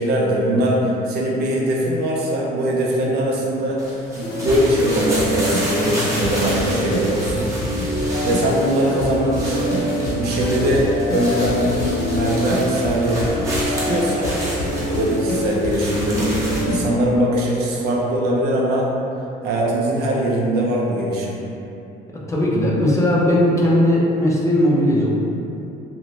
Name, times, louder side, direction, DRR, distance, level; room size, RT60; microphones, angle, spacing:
voice 1, 0.0-3.9 4.2-8.0 8.2-9.8 10.1-11.7 12.1-13.2 13.6-14.4 14.9-18.9 19.4-21.4, right 1 dB, 75° right, -3 dB, 0.5 m, -21 dB
sound 1, 3.8-16.6, right 1 dB, 20° right, 0.8 m, -31 dB
sound 2, 4.2-16.8, left 1 dB, 65° left, 0.7 m, -24 dB
voice 2, 22.3-25.1, left 1 dB, 15° left, -5 dB, 0.5 m, -17 dB
2.6 x 2.2 x 3.0 m, 2.8 s
cardioid pair, 110°, 17 cm